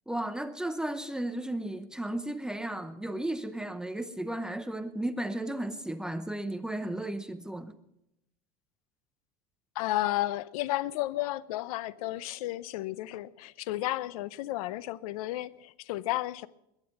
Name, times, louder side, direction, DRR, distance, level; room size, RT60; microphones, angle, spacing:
voice 1, 0.1-7.7, right 1 dB, 5° right, 0.8 m, -34 dB
voice 2, 9.7-16.5, left 16 dB, 85° left, 0.7 m, -32 dB
21.5 x 10.0 x 5.8 m
supercardioid pair, 135°, 18 cm